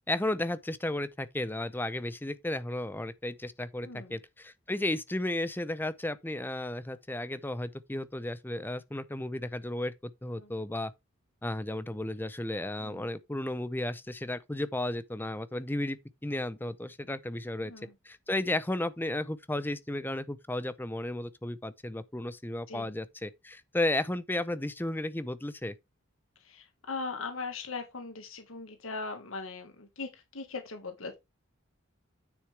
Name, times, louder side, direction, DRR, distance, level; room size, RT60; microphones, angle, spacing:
voice 1, 0.1-10.9 11.4-17.7 18.1-25.8, left 1 dB, 10° left, 0.6 m, -34 dB
voice 2, 3.8-4.2 10.3-10.5 12.8-13.1 17.6-17.9 22.7-23.0 26.4-31.2, left 4 dB, 85° left, 1.7 m, -40 dB
9.6 x 6.6 x 3.4 m
head